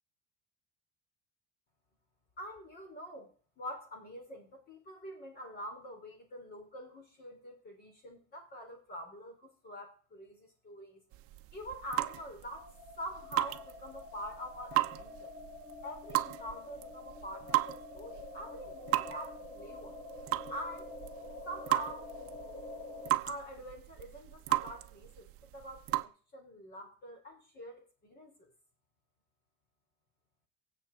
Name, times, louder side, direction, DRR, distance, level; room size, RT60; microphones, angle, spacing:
voice 1, 2.4-11.0 11.5-12.7 13.0-15.3 15.8-20.0 20.5-20.9 21.4-22.1 23.2-28.5, equal, 30° left, 3 dB, 4.8 m, -45 dB
sound 1, 11.1-26.0, right 18 dB, 45° right, 0.8 m, -36 dB
sound 2, 12.6-23.1, left 3 dB, 55° left, 5.2 m, -47 dB
23.5 x 8.0 x 4.1 m, 0.42 s
cardioid pair, 165°, 31 cm